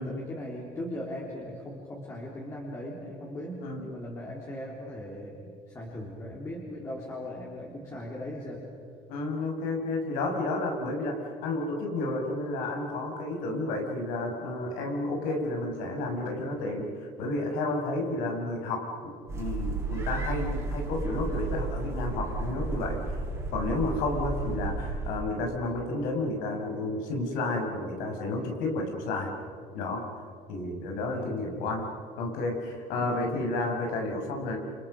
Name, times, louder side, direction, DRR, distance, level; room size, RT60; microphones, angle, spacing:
voice 1, 0.0-8.7 31.1-31.5 33.0-33.4, left 1 dB, 20° left, -3 dB, 3.8 m, -39 dB
voice 2, 9.1-23.2 23.5-29.3 29.7-30.1 30.5-31.9 32.2-34.6, left 2 dB, 85° left, 2 dB, 6.2 m, -31 dB
sound 1, 19.3-25.2, right 3 dB, 20° right, 4.5 m, -33 dB
29.0 x 28.0 x 6.7 m, 2.2 s
cardioid pair, 160°, 14 cm